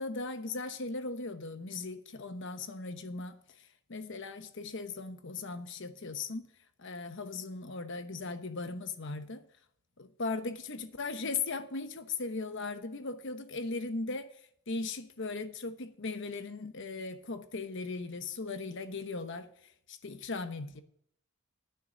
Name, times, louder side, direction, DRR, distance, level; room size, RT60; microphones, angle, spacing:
voice 1, 0.0-6.5 6.8-9.4 10.0-14.3 14.7-20.8, left 3 dB, 60° left, 1.1 m, -38 dB
9.4 x 6.7 x 8.7 m
head